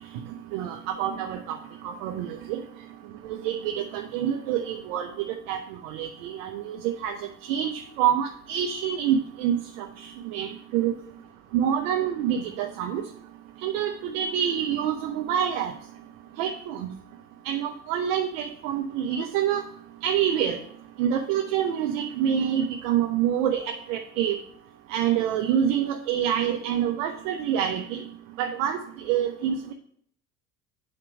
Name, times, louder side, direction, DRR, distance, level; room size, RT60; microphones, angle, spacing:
voice 1, 0.5-1.6 1.8-2.6 3.2-5.1 5.5-7.2 7.4-7.7 8.0-10.9 11.5-13.0 13.6-15.7 16.4-16.9 17.4-19.6 20.0-20.6 21.0-24.4 24.9-28.0 28.4-29.7, right 9 dB, 60° right, 3 dB, 0.8 m, -27 dB
8.6 x 3.0 x 6.2 m, 0.64 s
hypercardioid pair, 70°, 43 cm